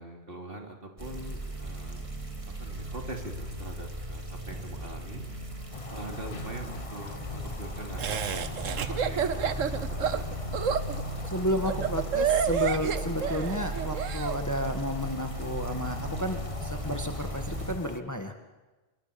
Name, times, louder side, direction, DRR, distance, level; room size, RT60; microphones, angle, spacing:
voice 1, 0.0-2.1 2.6-5.3 5.9-10.2, right 1 dB, 45° right, 3 dB, 3.4 m, -42 dB
sound 1, 1.0-17.8, right 2 dB, 25° right, 3.1 m, -37 dB
sound 2, 5.7-18.0, left 4 dB, 30° left, 0.9 m, -42 dB
Laughter, 8.0-14.3, right 7 dB, 90° right, 1.5 m, -29 dB
voice 2, 11.3-18.3, left 1 dB, 15° left, 6 dB, 1.7 m, -32 dB
26.5 x 23.0 x 7.1 m, 1.2 s
omnidirectional pair, 1.3 m